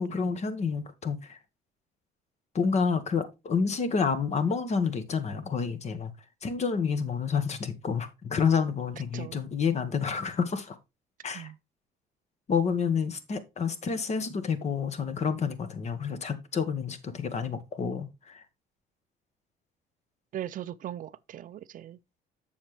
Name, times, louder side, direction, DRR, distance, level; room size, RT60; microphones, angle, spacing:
voice 1, 0.0-1.4 2.5-6.1 6.4-10.8 11.2-11.5 12.5-18.4, left 6 dB, 40° left, 1.5 m, -29 dB
voice 2, 20.3-22.0, right 11 dB, 50° right, 0.5 m, -39 dB
7.4 x 7.1 x 3.3 m
cardioid pair, 110°, 17 cm